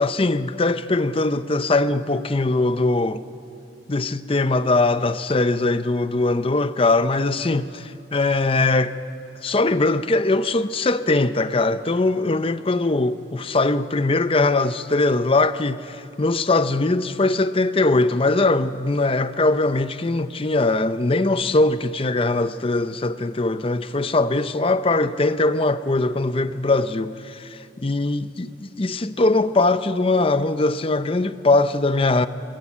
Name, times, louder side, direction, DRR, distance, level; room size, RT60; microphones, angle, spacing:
voice 1, 0.0-3.2 3.9-8.9 9.4-28.5 28.8-32.3, left 2 dB, 30° left, 0.6 m, -21 dB
24.0 x 22.0 x 8.6 m
head